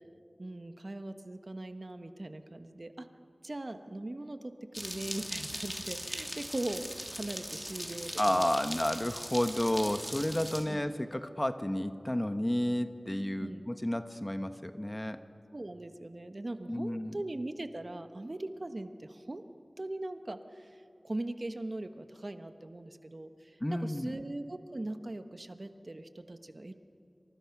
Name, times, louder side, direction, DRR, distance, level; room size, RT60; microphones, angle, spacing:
voice 1, 0.4-3.1 3.4-8.4 10.7-10.8 13.4-13.7 15.5-19.4 19.8-26.7, right 2 dB, 55° right, 8 dB, 1.3 m, -40 dB
sound 1, 4.7-10.6, equal, ahead, 3.0 m, -40 dB
voice 2, 8.2-15.2 16.7-17.2 23.6-24.1, left 1 dB, 25° left, 9 dB, 1.1 m, -31 dB
28.0 x 26.0 x 6.0 m, 2.7 s
wide cardioid pair, 45°, 0 cm